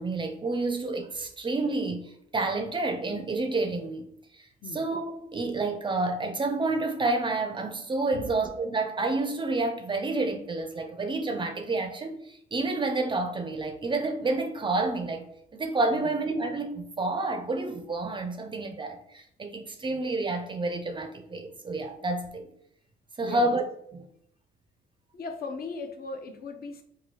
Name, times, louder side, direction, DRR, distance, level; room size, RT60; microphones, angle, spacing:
voice 1, 0.0-4.0 4.4-4.5 4.7-15.3 15.5-22.5 23.2-23.6 23.9-24.1, right 2 dB, 25° right, 0.4 m, -29 dB
voice 2, 23.2-23.6 25.1-26.8, left 4 dB, 50° left, 0.5 m, -38 dB
3.0 x 2.2 x 3.1 m
cardioid pair, 90°, 20 cm